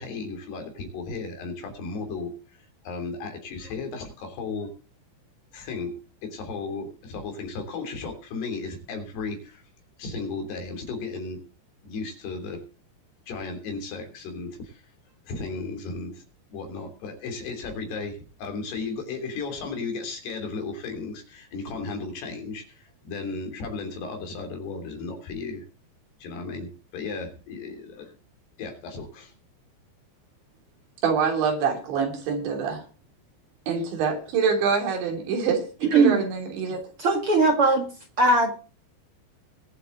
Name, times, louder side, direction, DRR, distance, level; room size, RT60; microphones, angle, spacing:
voice 1, 0.0-2.3 2.9-4.7 5.5-5.9 6.2-9.6 10.0-11.4 11.8-12.6 13.3-14.8 15.3-16.2 16.5-25.6 26.2-28.1 28.6-29.3, left 4 dB, 70° left, 5.2 m, -35 dB
voice 2, 31.0-32.8 33.7-36.8, right 6 dB, 85° right, 5.5 m, -25 dB
voice 3, 35.8-36.2 37.0-37.8 38.2-38.5, right 3 dB, 45° right, 2.0 m, -19 dB
22.0 x 7.8 x 3.8 m
omnidirectional pair, 5.1 m